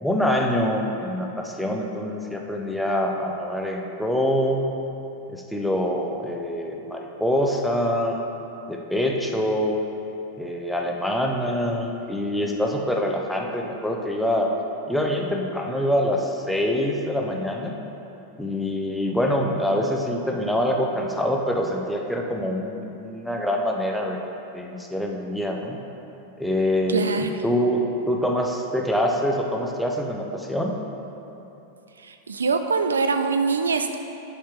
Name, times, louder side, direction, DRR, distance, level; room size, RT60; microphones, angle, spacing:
voice 1, 0.0-4.7 5.3-8.2 8.7-9.8 10.4-14.5 14.9-17.7 18.4-24.2 24.5-25.8 26.4-30.7, equal, ahead, 0 dB, 0.7 m, -25 dB
voice 2, 26.9-27.3 32.0-34.0, right 4 dB, 70° right, 7 dB, 0.3 m, -23 dB
11.0 x 4.3 x 3.6 m, 3.0 s
figure-of-eight pair, 90°, 0 cm